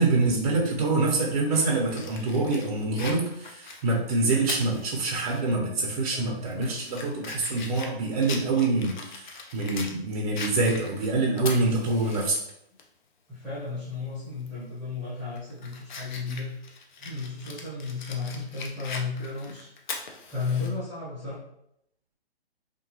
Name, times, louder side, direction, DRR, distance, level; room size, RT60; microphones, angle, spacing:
voice 1, 0.0-12.4, right 3 dB, 35° right, -1 dB, 0.5 m, -25 dB
Fire, 1.5-5.4 5.8-5.9 6.4-10.0 10.4-12.4 12.8-12.9 14.4-14.6 15.1-20.7, left 4 dB, 50° left, 0.5 m, -41 dB
voice 2, 6.1-6.8 13.3-16.5 17.0-19.7 20.3-21.3, left 4 dB, ahead, -10 dB, 0.8 m, -34 dB
2.8 x 2.3 x 2.6 m, 0.77 s
hypercardioid pair, 140°, 31 cm